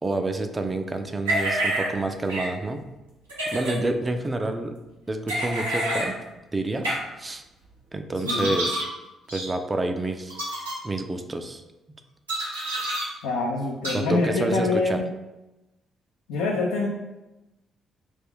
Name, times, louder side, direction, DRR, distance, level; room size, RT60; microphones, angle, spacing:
voice 1, 0.0-2.8 3.5-4.7 5.1-6.2 6.5-6.9 7.2-7.4 7.9-8.9 9.3-10.4 10.8-11.6 13.9-15.0, right 2 dB, 25° right, 6 dB, 0.3 m, -28 dB
sound 1, 1.2-1.9 2.3-2.5 3.3-3.8 5.3-6.1 6.8-7.0 8.2-8.9 9.3-9.5 10.3-10.7 12.3-13.0 13.8-13.9, right 1 dB, 85° right, 0.6 m, -27 dB
voice 2, 13.2-15.1 16.3-16.9, left 3 dB, 75° left, -2 dB, 0.3 m, -25 dB
2.3 x 2.3 x 3.4 m, 1.0 s
figure-of-eight pair, 45°, 0 cm